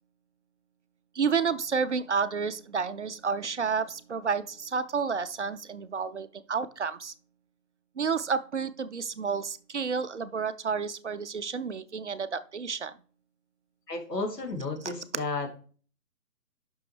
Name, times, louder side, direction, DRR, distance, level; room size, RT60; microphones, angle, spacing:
voice 1, 1.1-7.1 8.0-12.9, right 5 dB, 50° right, 13 dB, 0.5 m, -30 dB
voice 2, 13.9-15.6, left 3 dB, 80° left, 3 dB, 2.8 m, -33 dB
8.6 x 6.2 x 3.2 m, 0.41 s
figure-of-eight pair, 145°, 48 cm